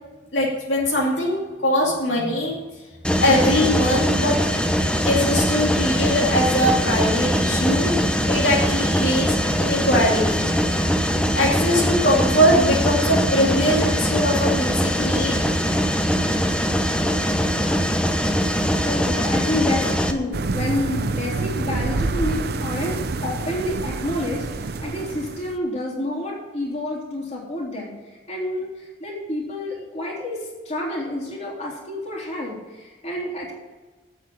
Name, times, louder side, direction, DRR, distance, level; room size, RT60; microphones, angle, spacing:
voice 1, 0.3-2.6 3.2-4.4 5.0-7.9 8.3-10.5 11.3-15.5, equal, 70° left, -4 dB, 2.5 m, -21 dB
Mechanisms, 3.0-20.1, equal, 5° left, 0.8 m, -22 dB
voice 2, 18.8-33.5, left 1 dB, 35° left, -3 dB, 3.4 m, -29 dB
sound 1, 20.3-25.6, right 3 dB, 55° right, 0.6 m, -27 dB
8.5 x 8.2 x 8.7 m, 1.3 s
head